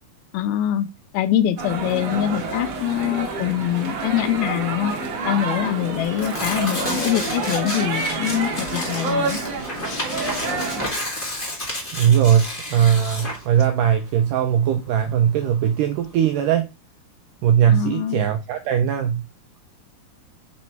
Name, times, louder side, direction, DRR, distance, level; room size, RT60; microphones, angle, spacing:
voice 1, 0.3-0.9 1.1-4.9 5.2-9.4 9.9-10.0 17.7-18.3, left 11 dB, 80° left, 2.3 m, -24 dB
sound 1, 1.6-10.9, right 3 dB, 55° right, 2.1 m, -28 dB
Tearing, 2.2-16.5, left 1 dB, 65° left, 0.5 m, -32 dB
voice 2, 11.9-16.7 17.4-19.2, right 9 dB, 90° right, 1.9 m, -19 dB
7.9 x 3.2 x 4.5 m
omnidirectional pair, 4.4 m